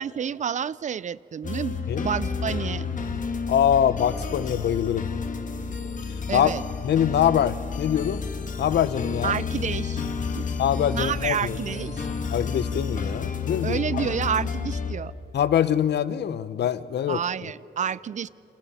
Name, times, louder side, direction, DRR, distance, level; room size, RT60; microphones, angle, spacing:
voice 1, 0.0-2.9 6.3-6.6 9.2-10.1 10.4-10.5 10.9-12.1 13.6-15.1 17.1-18.3, right 8 dB, 45° right, 20 dB, 0.4 m, -29 dB
sound 1, 1.4-14.9, left 5 dB, 50° left, 1.5 m, -31 dB
voice 2, 3.5-5.1 6.3-6.5 6.8-8.3 8.6-9.4 10.6-11.6 12.3-14.1 15.3-17.2, left 9 dB, 75° left, 15 dB, 0.7 m, -24 dB
28.5 x 28.5 x 4.2 m, 2.8 s
cardioid pair, 105°, 18 cm